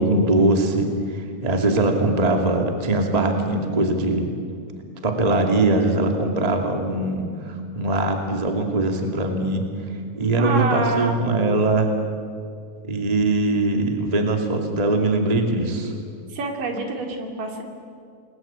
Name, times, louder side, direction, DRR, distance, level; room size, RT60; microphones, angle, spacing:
voice 1, 0.0-4.3 5.0-9.6 10.1-11.9 12.8-15.9, right 2 dB, 10° right, 4 dB, 2.2 m, -21 dB
voice 2, 10.4-11.2 16.3-17.6, right 3 dB, 70° right, 3 dB, 4.5 m, -26 dB
29.5 x 21.0 x 8.8 m, 2.3 s
omnidirectional pair, 4.0 m